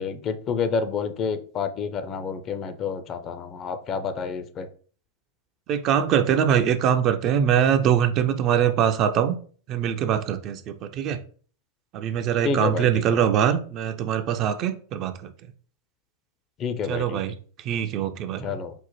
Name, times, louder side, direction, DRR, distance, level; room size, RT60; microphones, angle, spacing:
voice 1, 0.0-4.7 12.4-13.2 16.6-17.2 18.4-18.7, left 6 dB, 30° left, 8 dB, 0.4 m, -29 dB
voice 2, 5.7-9.3 9.7-11.2 11.9-15.3 16.9-17.4 17.7-18.5, right 9 dB, 35° right, 9 dB, 0.3 m, -23 dB
5.2 x 2.1 x 2.9 m, 0.43 s
figure-of-eight pair, 90°, 0 cm